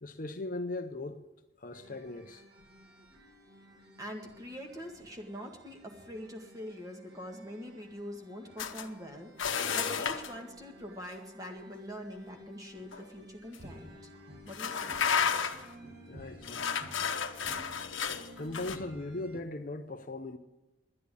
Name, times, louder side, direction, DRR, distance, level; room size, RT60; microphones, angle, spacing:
voice 1, 0.0-1.2 1.6-2.4 16.1-16.9 18.4-20.4, left 2 dB, 45° left, 0.7 m, -39 dB
sound 1, 1.7-19.4, equal, 55° right, 1.8 m, -53 dB
voice 2, 4.0-9.3 9.7-14.1 14.4-15.0, equal, 20° right, 1.8 m, -44 dB
sound 2, 8.6-8.9 9.4-10.3 12.9-13.0 13.5-13.6 14.5-15.7 16.4-18.8, left 6 dB, 80° left, 1.0 m, -32 dB
11.0 x 10.0 x 8.4 m
head